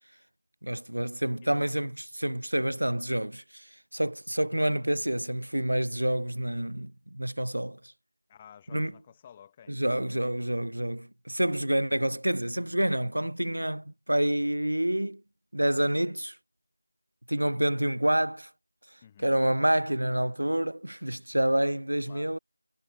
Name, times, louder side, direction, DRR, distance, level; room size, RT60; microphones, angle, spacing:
voice 1, 0.6-7.8 8.7-8.9 9.7-15.2 15.5-16.4 17.3-18.5 19.2-22.4, right 1 dB, 65° right, 0.5 m, -28 dB
voice 2, 8.3-9.8 19.0-19.3 22.0-22.4, left 9 dB, 10° left, 1.1 m, -52 dB
figure-of-eight pair, 175°, 0 cm